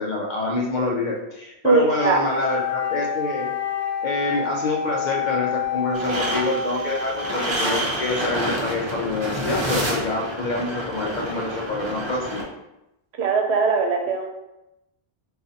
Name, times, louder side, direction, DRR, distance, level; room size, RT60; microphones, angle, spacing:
voice 1, 0.0-3.5 4.0-12.4, left 2 dB, 55° left, 0 dB, 0.5 m, -26 dB
voice 2, 1.6-2.2 13.2-14.3, right 4 dB, 85° right, 2 dB, 0.9 m, -20 dB
Wind instrument woodwind instrument, 1.9-7.8, left 6 dB, 90° left, 0.9 m, -28 dB
sound 1, 5.9-12.4, equal, 35° right, 0.5 m, -28 dB
2.6 x 2.4 x 3.8 m, 0.90 s
omnidirectional pair, 1.1 m